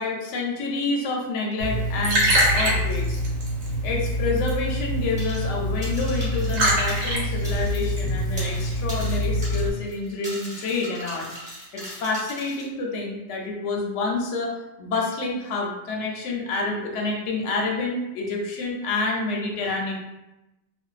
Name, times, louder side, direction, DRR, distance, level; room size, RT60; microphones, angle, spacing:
voice 1, 0.0-3.2 3.8-11.3 11.7-14.5 14.8-19.9, left 3 dB, 65° left, -1 dB, 0.8 m, -28 dB
Liquid, 1.6-9.7, equal, 80° right, 1.2 m, -24 dB
sound 1, 5.2-5.5 5.8-7.9 8.2-12.7, equal, 5° right, 1.0 m, -40 dB
2.5 x 2.1 x 2.3 m, 0.95 s
omnidirectional pair, 1.4 m